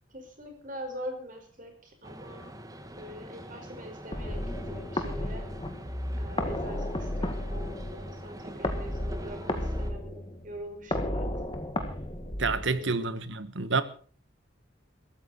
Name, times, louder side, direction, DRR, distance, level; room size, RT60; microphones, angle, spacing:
voice 1, 0.1-2.5 2.9-4.4 4.7-5.5 6.2-11.3 12.4-13.2, equal, 40° right, 4.9 m, -43 dB
sound 1, 2.0-9.9, right 1 dB, 20° right, 1.6 m, -45 dB
sound 2, 4.1-13.1, left 1 dB, 25° left, 1.7 m, -33 dB
voice 2, 12.4-13.8, right 4 dB, 70° right, 1.3 m, -28 dB
21.5 x 13.5 x 4.2 m
head